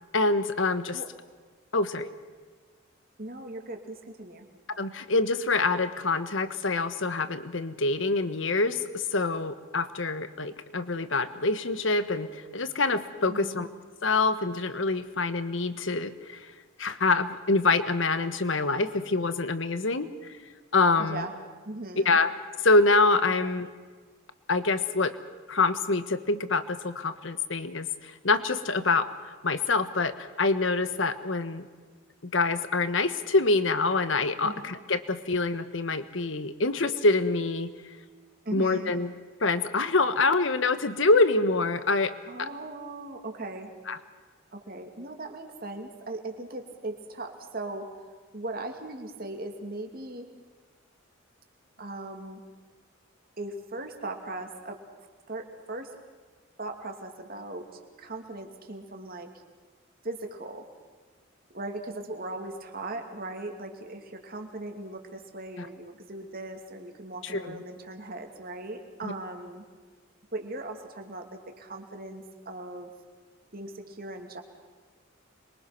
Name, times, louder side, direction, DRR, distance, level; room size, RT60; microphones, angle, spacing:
voice 1, 0.1-1.0 1.7-2.1 4.8-13.7 14.0-16.4 16.8-20.3 20.7-21.2 22.0-22.4 22.6-23.7 24.5-25.2 25.5-29.1 29.4-31.7 32.2-37.7 38.5-39.1 39.4-42.1 42.4-42.5 43.9-44.0 65.6-65.7 67.2-67.6 69.0-69.1, left 3 dB, 70° left, 12 dB, 1.4 m, -26 dB
voice 2, 3.2-4.5 13.3-13.7 21.0-21.3 21.6-22.2 23.3-23.5 34.4-34.7 38.4-38.9 42.3-43.7 44.5-47.9 48.3-50.3 51.8-52.4 53.4-54.8 55.3-56.0 56.6-57.7 58.0-59.3 60.0-60.7 61.5-69.6 70.3-72.9 73.5-74.4, right 2 dB, 45° right, 4 dB, 2.8 m, -38 dB
26.5 x 23.0 x 6.1 m, 1.4 s
head